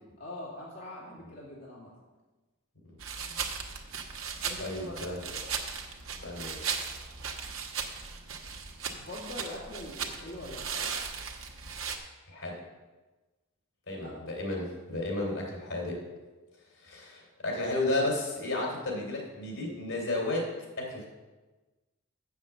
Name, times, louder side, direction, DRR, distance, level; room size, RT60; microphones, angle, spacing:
voice 1, 0.2-1.9 3.2-3.4 4.4-5.5 9.0-10.9 13.9-14.2, left 1 dB, 45° left, -6 dB, 1.9 m, -43 dB
sound 1, 3.0-12.0, right 6 dB, 80° right, 1.1 m, -37 dB
voice 2, 4.6-5.2 6.2-6.8 12.3-12.6 13.9-16.0 16.8-20.5 20.8-21.1, left 2 dB, 75° left, 0 dB, 3.0 m, -33 dB
8.0 x 7.2 x 7.1 m, 1.2 s
head